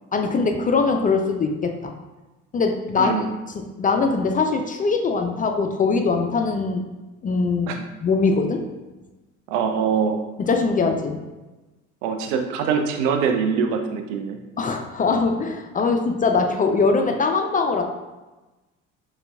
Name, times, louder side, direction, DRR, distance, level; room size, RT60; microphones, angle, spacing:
voice 1, 0.1-1.9 2.5-3.1 3.5-6.8 7.2-8.7 10.4-11.2 14.6-17.8, left 4 dB, 25° left, 5 dB, 0.3 m, -22 dB
voice 2, 3.0-3.3 7.7-7.8 9.5-10.2 12.0-14.4, right 6 dB, 75° right, 5 dB, 0.6 m, -23 dB
6.5 x 2.3 x 2.2 m, 1.1 s
hypercardioid pair, 60°, 37 cm